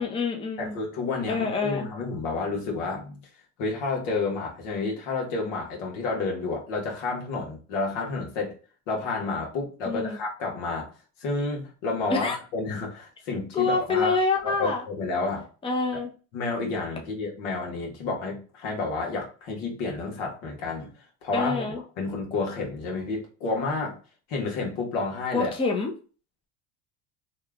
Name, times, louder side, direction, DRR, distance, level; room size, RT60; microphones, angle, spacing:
voice 1, 0.0-0.8 1.3-1.9 9.8-10.2 12.1-12.4 13.5-14.8 15.6-16.1 21.3-21.8 25.3-25.9, left 4 dB, 15° left, 2 dB, 0.6 m, -26 dB
voice 2, 0.6-3.2 3.6-8.5 8.9-10.9 11.2-14.2 14.4-15.4 15.9-16.0 16.3-20.9 21.2-24.0 24.3-25.5, left 3 dB, 85° left, 0 dB, 1.3 m, -30 dB
2.9 x 2.3 x 3.4 m, 0.36 s
cardioid pair, 115°, 35 cm